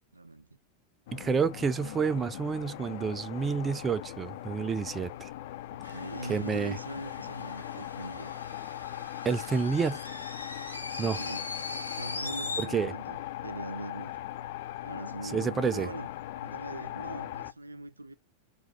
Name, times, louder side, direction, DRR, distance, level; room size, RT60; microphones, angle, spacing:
voice 1, 0.1-0.5 5.7-8.3 10.7-11.6 12.0-14.2 14.8-16.1 16.4-18.1, right 2 dB, 80° right, 0.4 m, -42 dB
sound 1, 1.1-17.5, left 13 dB, 50° left, 0.3 m, -40 dB
voice 2, 1.1-5.3 6.3-6.8 9.2-10.0 11.0-11.2 12.6-12.9 15.3-15.9, right 5 dB, 20° right, 0.4 m, -29 dB
sound 2, 5.8-12.7, left 3 dB, 80° left, 0.8 m, -40 dB
4.7 x 2.5 x 4.4 m
figure-of-eight pair, 90°, 0 cm